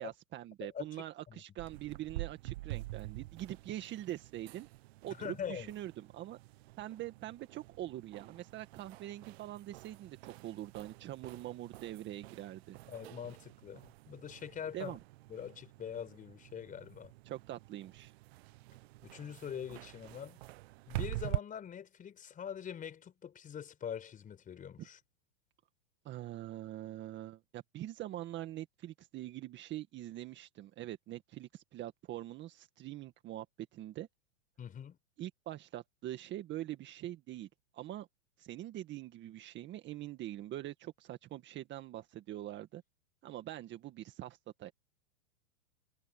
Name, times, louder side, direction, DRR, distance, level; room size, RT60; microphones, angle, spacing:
voice 1, 0.0-4.7 5.0-6.4 6.8-10.2 10.4-12.8 14.7-15.0 17.3-18.1 24.8-24.9 26.1-33.5 33.7-34.1 35.2-37.5 37.7-38.1 38.4-42.8 43.2-44.7, right 14 dB, 30° right, 1.9 m, -44 dB
sound 1, 1.6-21.4, right 19 dB, 55° right, 0.9 m, -46 dB
voice 2, 5.0-5.7 12.9-15.0 15.3-17.1 19.0-20.4 20.9-25.0 34.6-35.0, left 8 dB, 20° left, 5.0 m, -43 dB
hypercardioid pair, 135°, 38 cm